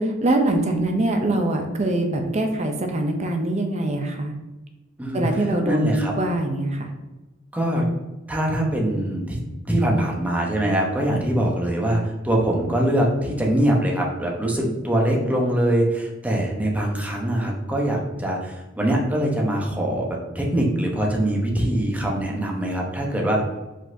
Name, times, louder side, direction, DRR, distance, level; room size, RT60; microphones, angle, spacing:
voice 1, 0.0-4.3 5.1-6.9, right 1 dB, 35° right, 4 dB, 0.6 m, -23 dB
voice 2, 5.6-6.1 7.5-7.8 8.3-9.4 9.7-23.4, right 1 dB, 10° right, -2 dB, 0.8 m, -23 dB
5.0 x 4.0 x 2.6 m, 1.1 s
head